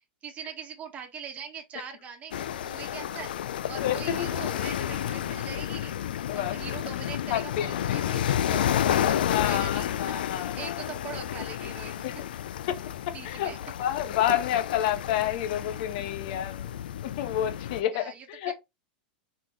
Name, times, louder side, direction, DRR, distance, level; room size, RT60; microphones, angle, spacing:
voice 1, 0.2-12.0 13.1-13.6 17.9-18.5, right 7 dB, 30° right, 1.5 m, -42 dB
sound 1, 2.3-17.8, left 10 dB, 90° left, 0.4 m, -31 dB
voice 2, 3.8-4.3 6.3-6.6 7.3-8.0 9.0-10.8 12.0-12.1 12.7-13.5 13.8-16.7 17.0-18.5, left 11 dB, 65° left, 1.1 m, -30 dB
4.5 x 3.6 x 3.3 m
supercardioid pair, 125°, 5 cm